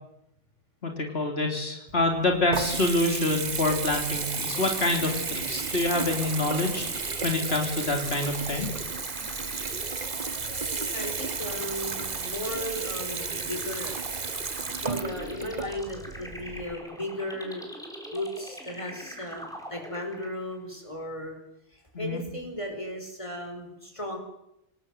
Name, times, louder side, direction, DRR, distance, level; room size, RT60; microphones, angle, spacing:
voice 1, 0.8-8.7 21.9-22.2, left 2 dB, 80° left, 3 dB, 3.1 m, -27 dB
Water tap faucet / Bathtub (filling or washing) / Trickle dribble, 1.9-16.7, right 5 dB, 45° right, 1.2 m, -33 dB
sound 1, 4.2-20.6, equal, 5° left, 4.1 m, -43 dB
voice 2, 10.9-14.0 14.8-17.7 18.1-19.4 19.7-21.4 22.0-24.2, left 1 dB, 30° left, 3 dB, 5.3 m, -35 dB
26.5 x 19.0 x 7.9 m, 0.83 s
omnidirectional pair, 1.0 m